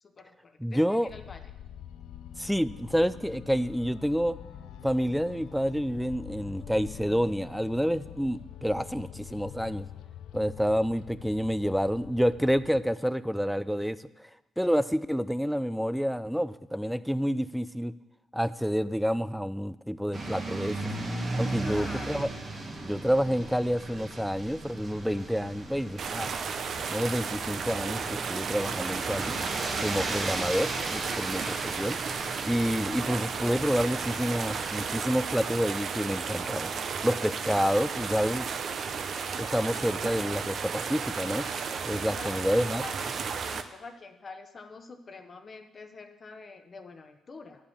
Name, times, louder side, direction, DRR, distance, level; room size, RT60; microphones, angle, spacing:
voice 1, 0.0-1.4 21.6-22.4 42.1-43.2 43.4-47.7, left 4 dB, 40° left, 7 dB, 0.8 m, -46 dB
voice 2, 0.6-1.1 2.4-4.4 4.8-9.9 10.3-14.3 14.6-17.9 18.3-20.8 21.3-22.3 22.8-26.3 26.9-29.3 29.8-32.0 32.5-36.7 37.0-38.5 39.4-41.5 41.9-42.8, equal, ahead, 15 dB, 0.4 m, -28 dB
sound 1, 1.1-12.8, left 10 dB, 85° left, 0.5 m, -45 dB
sound 2, 20.1-34.9, right 2 dB, 40° right, 1.4 m, -37 dB
sound 3, 26.0-43.6, right 6 dB, 55° right, 0.7 m, -34 dB
10.0 x 5.1 x 7.1 m, 0.97 s
cardioid pair, 90°, 0 cm